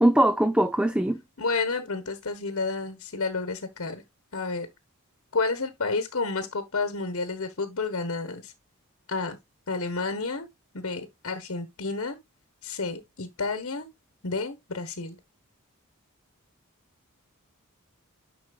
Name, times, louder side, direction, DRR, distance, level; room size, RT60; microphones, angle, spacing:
voice 1, 0.0-1.2, right 1 dB, 5° right, 0.5 m, -21 dB
voice 2, 1.4-4.0 4.3-4.7 5.3-8.5 9.1-9.4 9.7-10.5 10.7-12.2 12.6-13.9 14.2-15.2, left 3 dB, 65° left, 1.3 m, -30 dB
10.5 x 5.9 x 2.3 m
head